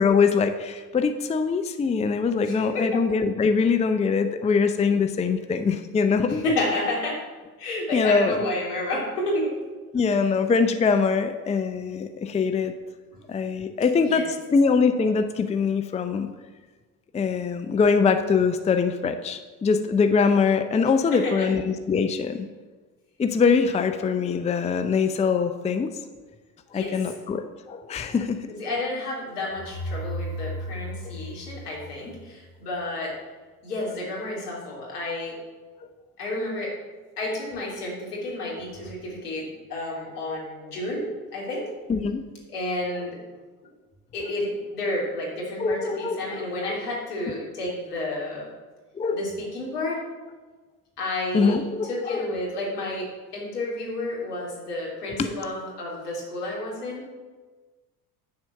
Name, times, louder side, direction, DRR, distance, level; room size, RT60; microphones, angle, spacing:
voice 1, 0.0-6.4 7.9-8.4 9.9-12.7 13.3-16.3 17.1-22.5 23.2-25.9 26.7-27.4 27.7-28.4 41.9-42.2 45.6-46.8 49.0-49.2 51.3-52.3 55.2-55.3, left 5 dB, 15° left, 8 dB, 0.6 m, -23 dB
voice 2, 2.4-3.0 6.3-7.2 7.6-9.5 14.0-14.3 21.0-21.5 26.7-27.1 28.6-33.1 33.6-35.4 36.2-36.7 37.2-41.6 42.5-43.2 44.1-48.5 49.1-50.0 51.0-51.6 51.9-57.0, left 2 dB, 80° left, -4 dB, 2.9 m, -30 dB
sound 1, 29.5-32.4, equal, 60° right, 2.5 m, -34 dB
9.5 x 4.4 x 6.4 m, 1.3 s
hypercardioid pair, 65°, 46 cm